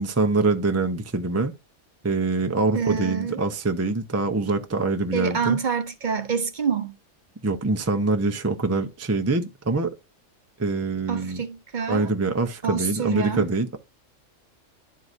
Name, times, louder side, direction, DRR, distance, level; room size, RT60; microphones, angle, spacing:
voice 1, 0.0-1.5 2.0-5.6 7.4-9.9 10.6-11.4 11.9-13.8, right 3 dB, 20° right, 0.4 m, -24 dB
voice 2, 2.7-3.4 5.1-6.9 11.1-12.1 12.6-13.4, right 6 dB, 45° right, 0.8 m, -26 dB
11.0 x 4.7 x 2.6 m
omnidirectional pair, 1.3 m